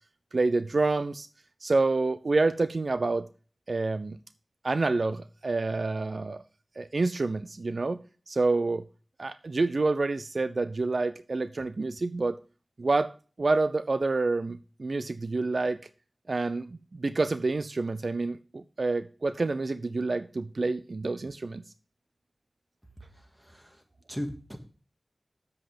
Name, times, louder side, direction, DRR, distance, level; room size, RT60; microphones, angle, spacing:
voice 1, 0.3-1.3 1.6-3.3 3.7-4.2 4.6-6.4 6.8-8.0 8.3-8.8 9.2-12.4 12.8-13.1 13.4-15.8 16.3-21.6, right 3 dB, 65° right, 0.5 m, -28 dB
voice 2, 23.0-23.8 24.1-24.6, equal, 10° right, 2.1 m, -38 dB
8.1 x 7.6 x 5.0 m
cardioid pair, 45°, 0 cm